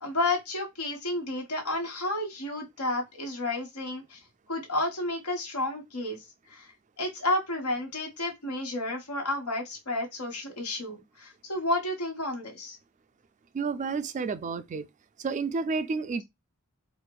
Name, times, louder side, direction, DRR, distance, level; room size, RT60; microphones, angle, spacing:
voice 1, 0.0-4.2 4.5-6.2 6.5-6.7 7.0-12.8, left 2 dB, 80° left, 1.4 m, -31 dB
voice 2, 13.5-14.9 15.2-16.2, right 4 dB, 35° right, 0.3 m, -30 dB
4.3 x 2.1 x 2.3 m
head